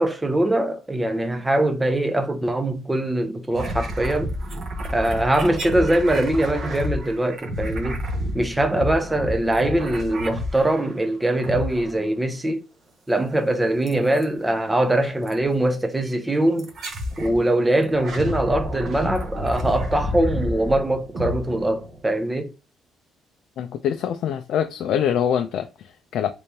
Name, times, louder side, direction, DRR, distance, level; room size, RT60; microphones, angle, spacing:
voice 1, 0.0-4.4 4.9-8.0 8.3-12.6 13.1-16.7 17.2-22.5, right 1 dB, 10° right, 0.6 m, -22 dB
sound 1, 3.5-11.0 11.4-12.2 13.9-14.3 15.3-15.4 16.6-17.4 17.8-22.2, equal, 45° right, 0.8 m, -30 dB
voice 2, 23.6-26.3, left 9 dB, 65° left, 0.3 m, -24 dB
3.4 x 3.1 x 2.7 m
cardioid pair, 130°, 0 cm